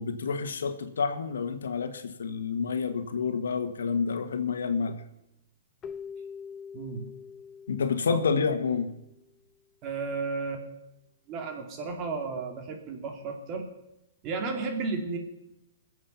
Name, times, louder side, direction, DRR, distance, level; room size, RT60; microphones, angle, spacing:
voice 1, 0.0-5.0 7.7-8.9, left 5 dB, 85° left, 8 dB, 1.5 m, -29 dB
Keyboard (musical), 5.8-9.1, left 6 dB, 20° left, 0.6 m, -44 dB
voice 2, 6.7-7.0 8.1-8.2 9.8-10.7 11.3-13.7 14.2-15.2, right 4 dB, 35° right, 4 dB, 2.7 m, -33 dB
21.0 x 7.7 x 5.7 m, 0.88 s
hypercardioid pair, 135°, 0 cm